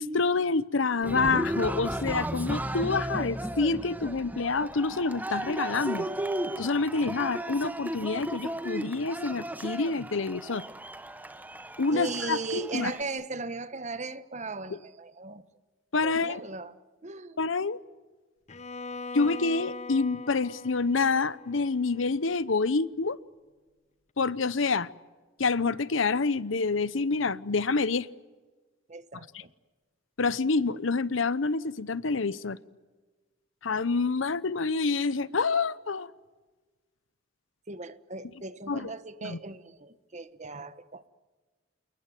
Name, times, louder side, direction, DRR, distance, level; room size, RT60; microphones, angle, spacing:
voice 1, 0.0-6.1 6.6-10.6 11.8-12.9 15.9-16.4 17.4-17.8 19.1-23.2 24.2-24.9 25.4-28.1 30.2-32.6 33.6-36.1 38.7-38.9 39.2-39.4, left 4 dB, 80° left, 18 dB, 0.9 m, -27 dB
Cheering, 1.0-13.0, right 1 dB, 10° right, 1.0 m, -35 dB
voice 2, 11.9-15.4 16.0-16.8 17.0-17.4 28.9-29.5 37.7-41.1, right 3 dB, 35° right, 13 dB, 1.3 m, -37 dB
Bowed string instrument, 18.5-22.5, left 3 dB, 35° left, 0.8 m, -42 dB
29.0 x 20.0 x 9.3 m, 1.3 s
head